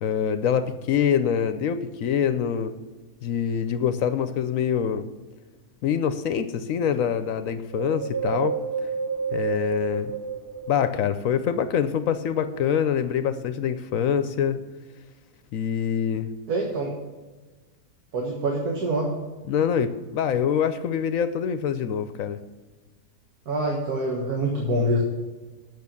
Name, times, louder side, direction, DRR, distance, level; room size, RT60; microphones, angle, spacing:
voice 1, 0.0-2.7 3.2-5.1 5.8-8.5 9.3-10.1 10.7-14.6 15.5-16.3 19.5-22.4, left 8 dB, 70° left, 11 dB, 0.9 m, -25 dB
Wind, 7.7-11.3 11.8-13.0 13.6-13.7, right 5 dB, 15° right, 0.6 m, -31 dB
voice 2, 16.5-16.9 18.1-19.1 23.5-25.0, right 1 dB, 75° right, -1 dB, 2.0 m, -25 dB
8.5 x 6.3 x 7.0 m, 1.3 s
omnidirectional pair, 1.7 m